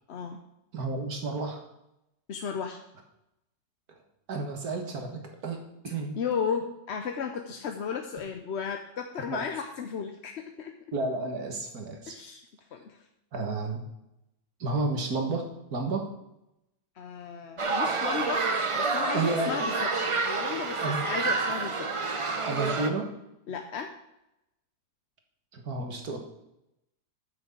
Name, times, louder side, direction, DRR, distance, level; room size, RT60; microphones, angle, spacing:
voice 1, 0.1-0.4 2.3-2.8 6.2-10.7 12.1-12.4 12.7-13.0 17.0-18.5 18.7-19.7 20.2-21.9 23.5-23.9, left 6 dB, 55° left, 4 dB, 0.9 m, -34 dB
voice 2, 0.7-1.6 4.3-6.2 9.3-9.5 10.9-12.2 13.3-13.8 14.6-16.1 19.1-19.5 20.8-21.0 22.4-23.1 25.5-26.2, right 3 dB, 65° right, 4 dB, 2.0 m, -31 dB
sound 1, 17.6-22.9, right 4 dB, 40° right, 0.4 m, -28 dB
9.1 x 6.2 x 7.2 m, 0.88 s
omnidirectional pair, 1.8 m